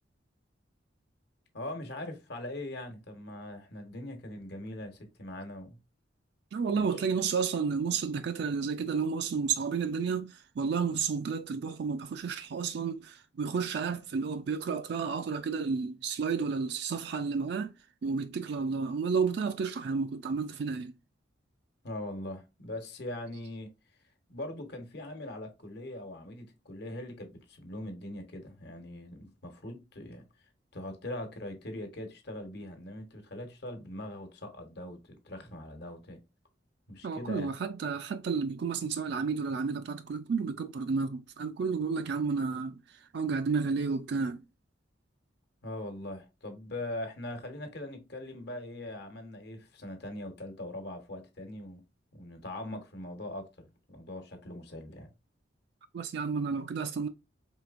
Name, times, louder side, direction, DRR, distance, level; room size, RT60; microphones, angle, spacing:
voice 1, 1.5-5.8 6.8-6.9 21.8-23.7 24.3-30.2 30.7-36.2 36.9-37.5 45.6-51.8 52.1-53.5 53.9-55.1, left 1 dB, 60° left, 1.1 m, -41 dB
voice 2, 6.5-17.7 18.0-20.9 37.0-44.4 55.9-57.1, right 5 dB, 60° right, 0.3 m, -31 dB
4.6 x 3.3 x 2.4 m
head